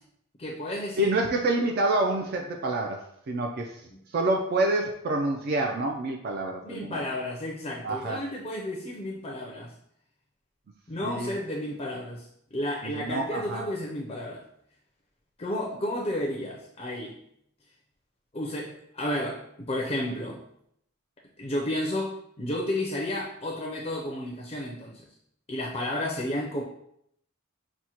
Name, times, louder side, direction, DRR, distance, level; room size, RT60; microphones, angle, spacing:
voice 1, 0.4-1.1 3.9-4.0 6.6-9.7 10.9-14.5 15.4-17.2 18.3-20.4 21.4-25.1 25.5-26.6, left 1 dB, 30° left, -1 dB, 0.4 m, -32 dB
voice 2, 1.0-3.8 4.1-7.0 7.8-8.2 11.0-11.3 12.8-13.6, right 2 dB, 45° right, 2 dB, 0.3 m, -27 dB
6.0 x 2.1 x 2.8 m, 0.72 s
head